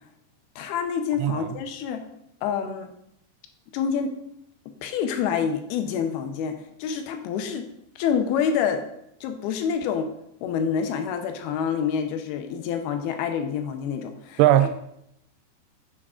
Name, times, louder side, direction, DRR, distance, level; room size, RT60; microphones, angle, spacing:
voice 1, 0.6-2.1 2.4-2.9 3.7-4.1 4.8-7.7 8.0-8.9 9.2-10.1 10.4-14.4, left 7 dB, 80° left, 2.4 m, -27 dB
voice 2, 14.4-14.8, right 13 dB, 85° right, 2.4 m, -18 dB
8.5 x 5.2 x 3.7 m
omnidirectional pair, 4.9 m